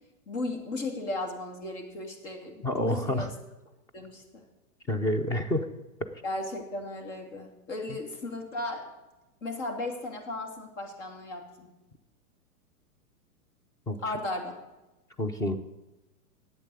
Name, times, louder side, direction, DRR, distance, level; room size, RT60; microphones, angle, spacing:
voice 1, 0.3-3.3 3.9-4.4 6.2-8.9 9.4-11.7 14.0-14.5, left 2 dB, 55° left, 4 dB, 3.0 m, -35 dB
voice 2, 2.6-3.3 4.9-5.7 13.9-14.0 15.2-15.6, left 1 dB, 10° left, 8 dB, 0.5 m, -28 dB
10.5 x 8.5 x 8.0 m, 1.0 s
hypercardioid pair, 130°, 44 cm